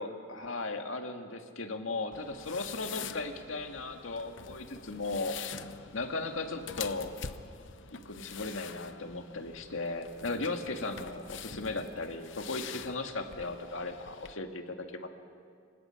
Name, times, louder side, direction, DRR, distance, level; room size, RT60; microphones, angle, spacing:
voice 1, 0.0-5.4 5.9-7.1 7.9-15.1, left 3 dB, 85° left, 5 dB, 1.9 m, -36 dB
sound 1, 2.1-14.3, left 7 dB, 65° left, 0.8 m, -45 dB
28.5 x 25.5 x 5.9 m, 2.2 s
head